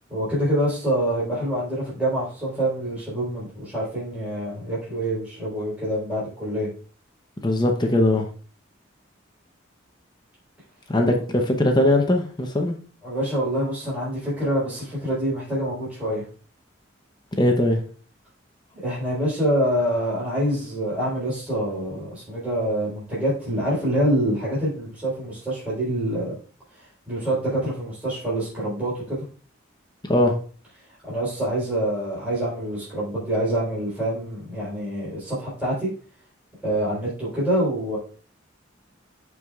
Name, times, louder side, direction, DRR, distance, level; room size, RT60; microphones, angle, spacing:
voice 1, 0.1-6.7 11.1-11.2 13.0-16.2 18.7-26.3 27.1-29.2 31.1-35.9 36.6-38.0, right 1 dB, 5° right, 3.6 m, -26 dB
voice 2, 7.4-8.3 10.9-12.8 17.4-17.8 30.1-30.3, left 1 dB, 20° left, 0.7 m, -20 dB
14.0 x 4.7 x 2.4 m
head